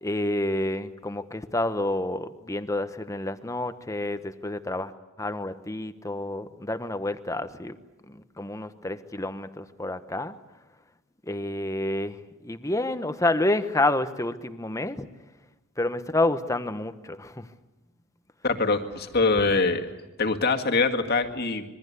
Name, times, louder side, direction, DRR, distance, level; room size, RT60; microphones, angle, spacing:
voice 1, 0.0-4.9 5.2-7.8 8.1-10.4 11.3-12.2 12.4-15.1 15.8-17.5, left 2 dB, 15° left, 11 dB, 1.1 m, -29 dB
voice 2, 18.4-19.9 20.2-21.6, left 3 dB, 50° left, 5 dB, 2.1 m, -23 dB
26.5 x 22.5 x 8.2 m, 1.1 s
head